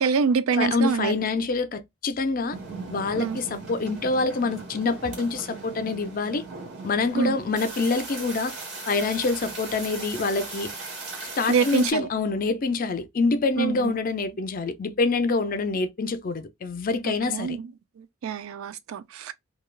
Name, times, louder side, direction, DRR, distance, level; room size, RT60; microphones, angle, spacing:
voice 1, 0.0-1.2 3.2-3.4 7.1-7.4 11.5-12.1 13.6-13.9 17.0-17.7 18.0-19.3, right 5 dB, 80° right, 0.4 m, -26 dB
voice 2, 0.6-2.6 2.9-6.4 6.8-8.5 8.9-10.7 11.4-17.6, left 3 dB, 40° left, 0.4 m, -26 dB
sound 1, 2.5-11.9, right 3 dB, 55° right, 1.8 m, -38 dB
3.2 x 2.3 x 2.2 m
head